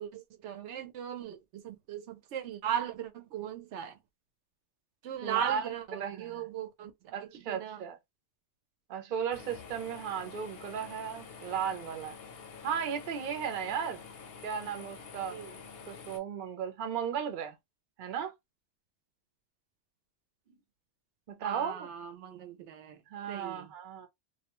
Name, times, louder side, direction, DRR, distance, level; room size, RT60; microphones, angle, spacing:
voice 1, 0.0-4.0 5.0-6.9 7.2-7.8 15.3-15.6 21.4-23.0 23.3-23.7, right 9 dB, 80° right, 0.9 m, -38 dB
voice 2, 5.2-6.5 7.1-8.0 8.9-12.2 12.6-14.0 14.4-15.4 15.9-17.6 18.0-18.3 21.3-21.9 23.1-24.1, right 7 dB, 50° right, 0.7 m, -35 dB
sound 1, 9.3-16.2, left 5 dB, 65° left, 0.8 m, -48 dB
2.3 x 2.2 x 2.9 m
omnidirectional pair, 1.2 m